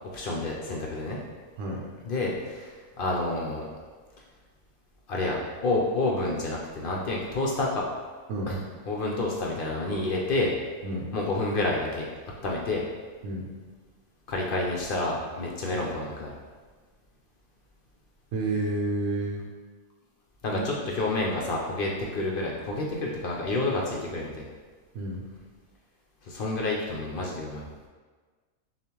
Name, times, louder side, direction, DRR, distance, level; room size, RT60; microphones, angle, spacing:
voice 1, 0.1-1.2 2.1-3.7 5.1-7.9 8.5-8.6 8.9-10.5 11.1-12.1 12.4-12.8 14.3-16.3 20.4-24.5 26.3-27.6, left 2 dB, 65° left, -2 dB, 0.5 m, -29 dB
voice 2, 18.3-19.4 20.5-20.7 24.9-25.2, right 2 dB, 65° right, -3 dB, 0.9 m, -30 dB
6.8 x 2.4 x 3.0 m, 1.4 s
omnidirectional pair, 1.6 m